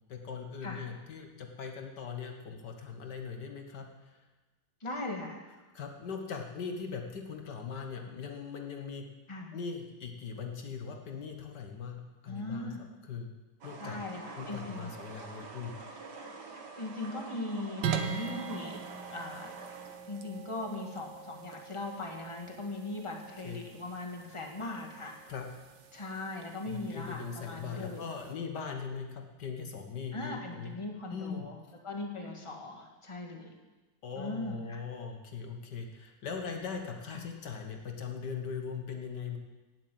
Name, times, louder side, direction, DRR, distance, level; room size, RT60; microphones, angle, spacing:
voice 1, 0.1-3.9 5.8-9.1 9.5-12.7 13.0-13.3 13.6-14.0 14.4-15.7 23.4-23.6 25.3-25.5 26.7-30.8 31.1-31.5 34.0-39.4, left 6 dB, 70° left, 4 dB, 1.8 m, -40 dB
voice 2, 4.8-5.4 9.3-9.5 12.3-12.8 13.8-14.9 16.8-18.8 19.1-19.5 20.1-25.2 25.9-28.1 30.1-33.5 34.1-34.8 37.1-37.3, left 2 dB, 15° left, 1 dB, 1.9 m, -39 dB
sound 1, 13.6-20.0, right 3 dB, 70° right, 2.3 m, -47 dB
blade strike, 17.8-28.3, right 7 dB, 85° right, 1.7 m, -42 dB
18.0 x 7.6 x 7.8 m, 1.2 s
omnidirectional pair, 1.9 m